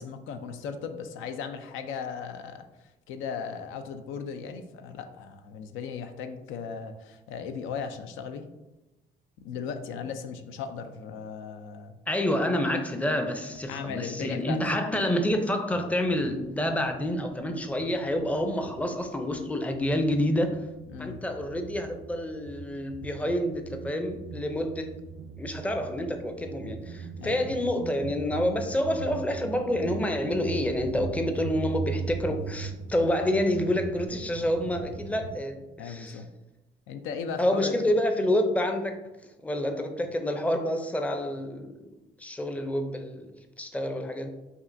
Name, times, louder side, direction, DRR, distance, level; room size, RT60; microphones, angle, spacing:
voice 1, 0.0-2.7 3.1-8.5 9.4-12.0 13.7-14.6 20.9-21.2 27.2-27.6 35.8-36.3 36.9-37.9, left 6 dB, 90° left, 8 dB, 0.4 m, -37 dB
voice 2, 12.1-20.6 21.0-24.9 25.4-36.2 37.4-38.9 39.4-41.9 42.2-44.3, left 1 dB, 5° left, 6 dB, 0.4 m, -28 dB
sound 1, 15.7-17.3 17.6-35.4, right 6 dB, 65° right, 0.4 m, -40 dB
5.3 x 2.5 x 2.6 m, 1.0 s
cardioid pair, 90°, 20 cm